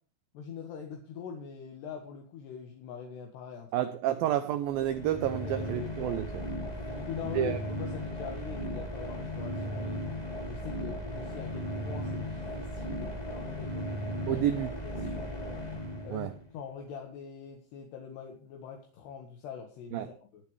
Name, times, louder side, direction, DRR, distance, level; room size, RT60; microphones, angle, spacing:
voice 1, 0.3-4.6 5.3-5.9 6.8-10.0 10.4-13.9 14.3-14.5 14.8-15.6 16.0-20.4, left 7 dB, 70° left, 3.6 m, -43 dB
voice 2, 3.7-6.5 7.3-7.6 14.3-14.7 15.0-15.1 16.1-16.3 19.9-20.1, right 11 dB, 90° right, 2.0 m, -30 dB
sound 1, 4.7-16.5, equal, 15° left, 1.5 m, -36 dB
21.0 x 8.4 x 3.3 m
omnidirectional pair, 5.2 m